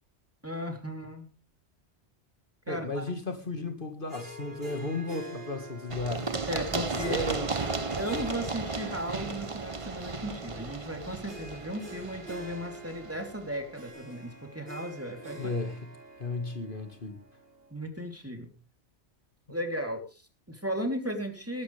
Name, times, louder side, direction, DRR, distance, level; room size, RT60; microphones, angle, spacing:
voice 1, 0.4-1.3 2.7-3.1 6.5-7.3 7.9-15.5 17.7-18.5 19.5-21.6, equal, 10° right, 3.4 m, -36 dB
voice 2, 2.7-6.4 6.7-7.5 15.4-15.9 16.2-17.2, left 2 dB, 50° left, 2.1 m, -34 dB
Harp, 4.1-17.7, right 1 dB, 55° right, 3.7 m, -45 dB
Run, 5.9-13.5, right 4 dB, 30° right, 1.0 m, -35 dB
21.0 x 12.0 x 3.4 m
omnidirectional pair, 1.2 m